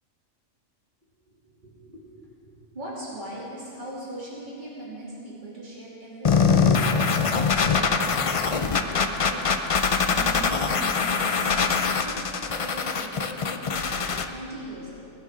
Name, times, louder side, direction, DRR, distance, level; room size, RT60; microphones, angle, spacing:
voice 1, 1.3-2.1 2.4-7.2 7.5-9.6 10.0-11.6 12.0-15.1, right 1 dB, 35° right, -7 dB, 3.2 m, -40 dB
sound 1, 6.2-14.2, left 5 dB, 55° left, 0.3 m, -23 dB
22.0 x 9.5 x 3.8 m, 2.7 s
omnidirectional pair, 1.4 m